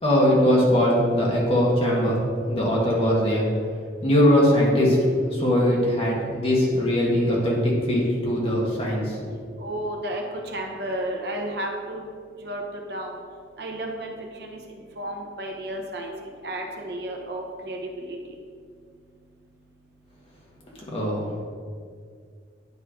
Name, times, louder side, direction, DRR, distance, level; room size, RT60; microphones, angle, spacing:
voice 1, 0.0-2.2 2.5-3.5 4.0-5.0 5.3-9.3 20.9-21.3, equal, 30° left, -4 dB, 1.5 m, -21 dB
voice 2, 9.6-12.0 12.4-12.6 12.9-13.2 13.6-16.1 16.4-18.2, right 1 dB, 65° right, 1 dB, 1.0 m, -32 dB
9.7 x 3.3 x 5.0 m, 2.1 s
head